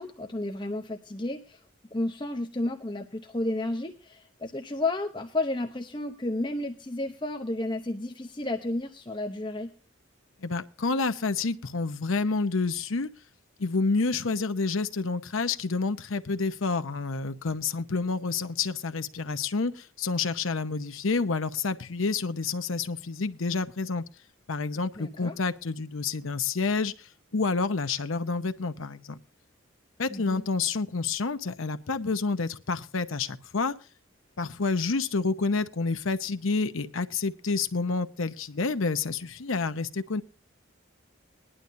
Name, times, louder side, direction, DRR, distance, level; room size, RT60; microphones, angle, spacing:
voice 1, 0.0-1.6 1.9-9.7 25.0-25.4 30.1-30.4, left 2 dB, 20° left, 5 dB, 0.7 m, -32 dB
voice 2, 10.4-13.1 13.6-24.0 24.5-26.9 27.3-29.2 30.0-33.8 34.4-40.2, left 4 dB, 80° left, 10 dB, 0.8 m, -29 dB
20.0 x 11.0 x 2.6 m, 0.33 s
head